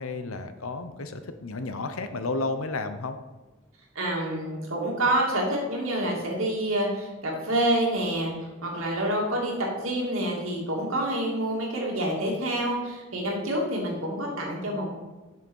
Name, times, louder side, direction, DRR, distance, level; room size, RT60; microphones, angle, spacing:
voice 1, 0.0-3.2, left 3 dB, 85° left, 9 dB, 0.8 m, -32 dB
voice 2, 3.9-14.9, right 1 dB, 80° right, -2 dB, 2.6 m, -27 dB
7.5 x 6.4 x 5.4 m, 1.2 s
head